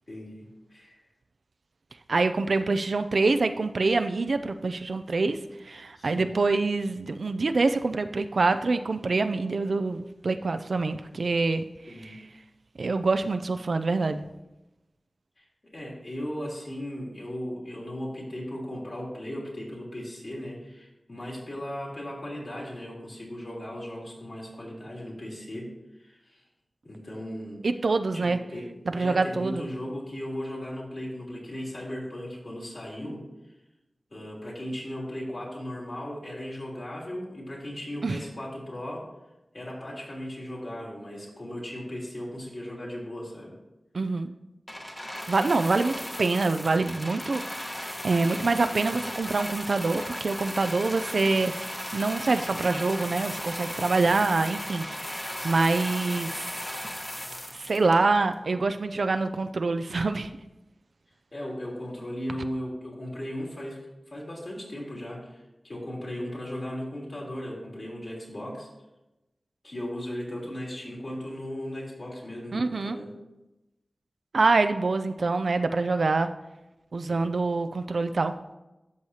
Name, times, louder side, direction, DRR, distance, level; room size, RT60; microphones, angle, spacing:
voice 1, 0.1-1.0 6.0-6.3 11.9-12.1 15.4-15.5 15.7-25.7 26.0-26.4 26.8-27.6 28.1-33.5 34.1-39.0 39.5-43.6 54.0-54.2 61.3-63.8 64.1-68.7 69.6-73.1 77.1-77.2, equal, 60° left, -4 dB, 3.4 m, -37 dB
voice 2, 2.1-5.4 5.6-12.2 12.8-14.3 27.6-28.4 28.9-29.6 38.0-38.2 43.9-44.3 45.3-56.5 57.5-60.3 72.5-73.0 74.3-76.3 76.9-78.3, right 3 dB, 80° right, 9 dB, 0.4 m, -26 dB
sound 1, 44.7-58.3 59.1-59.2, left 1 dB, 25° left, 1.2 m, -36 dB
13.0 x 6.3 x 2.8 m, 0.99 s
wide cardioid pair, 45°, 0 cm